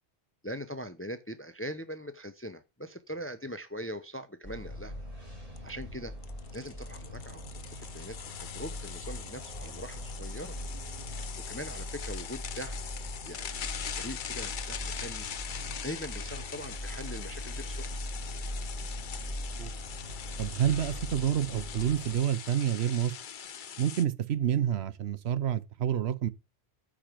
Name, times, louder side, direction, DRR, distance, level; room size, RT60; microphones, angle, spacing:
voice 1, 0.4-4.9 5.6-6.1 6.5-10.6 11.5-12.9 13.2-15.3 15.8-17.9, equal, 15° left, 0.5 m, -41 dB
sound 1, 4.4-22.2, left 1 dB, 35° right, 3.4 m, -41 dB
sound 2, 5.1-5.2 5.6-5.7 6.2-24.0, left 8 dB, 50° left, 0.8 m, -42 dB
voice 2, 20.4-23.1 23.8-26.3, right 10 dB, 70° right, 0.9 m, -28 dB
8.8 x 5.0 x 7.4 m
omnidirectional pair, 1.1 m